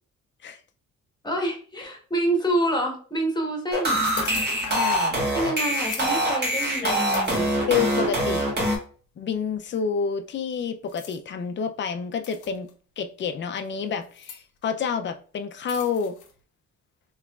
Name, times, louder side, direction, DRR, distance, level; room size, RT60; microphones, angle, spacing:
voice 1, 1.2-4.0 5.3-7.5, right 1 dB, 15° left, 1.1 m, -27 dB
sound 1, 3.7-8.8, right 1 dB, 35° right, 1.3 m, -24 dB
sound 2, 3.9-4.9 5.7-6.1 7.1-8.0 8.7-8.8 10.9-11.2 12.2-12.7 14.0-14.4 15.7-16.3, left 5 dB, 85° left, 0.7 m, -37 dB
voice 2, 4.7-5.2 6.8-7.0 7.7-8.5 9.2-12.7 13.0-16.2, left 6 dB, 40° left, 0.5 m, -28 dB
3.5 x 3.0 x 2.3 m
cardioid pair, 90°, 30 cm